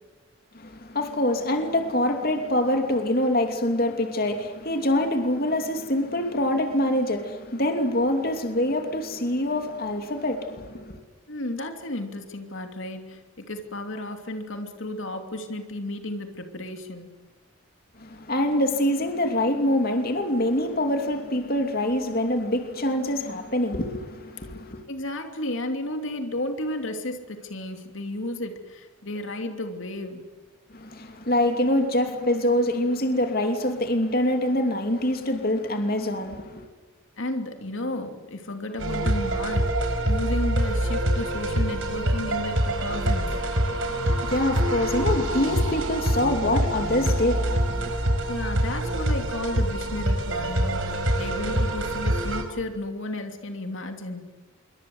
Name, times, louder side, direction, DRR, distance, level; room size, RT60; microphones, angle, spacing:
voice 1, 0.5-11.0 18.0-24.8 30.7-36.7 43.7-47.9, left 1 dB, 45° left, 2.9 m, -25 dB
voice 2, 11.3-17.1 24.9-30.2 37.2-43.4 48.3-54.2, left 1 dB, 65° left, 2.9 m, -33 dB
sound 1, 38.8-52.4, right 1 dB, 65° right, 5.2 m, -25 dB
27.5 x 23.5 x 8.0 m
head